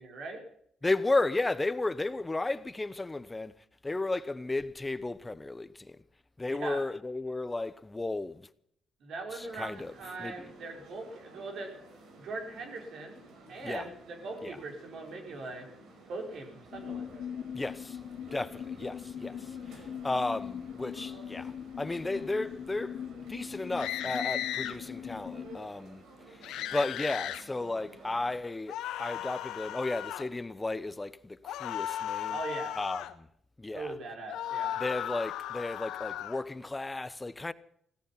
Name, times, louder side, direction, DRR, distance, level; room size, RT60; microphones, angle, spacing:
voice 1, 0.0-0.4 6.5-6.8 9.0-11.7 12.2-13.2 13.5-15.7 16.1-17.1 32.3-32.8 33.7-34.8, right 3 dB, 65° right, 5.1 m, -40 dB
voice 2, 0.8-3.6 3.8-6.0 6.4-8.5 9.3-9.9 10.2-10.5 13.6-13.9 14.4-14.6 17.5-18.0 18.3-23.0 23.3-26.0 26.3-32.4 32.8-33.3 33.6-33.9 34.8-37.5, left 2 dB, 15° left, 1.0 m, -34 dB
sound 1, 9.4-28.3, right 2 dB, 80° right, 5.6 m, -53 dB
sound 2, 16.7-25.6, left 8 dB, 65° left, 0.7 m, -41 dB
sound 3, 23.8-24.8 26.4-27.4 28.7-30.3 31.4-33.1 34.3-36.4, left 11 dB, 90° left, 1.3 m, -36 dB
16.5 x 14.5 x 5.8 m
cardioid pair, 90°, 0 cm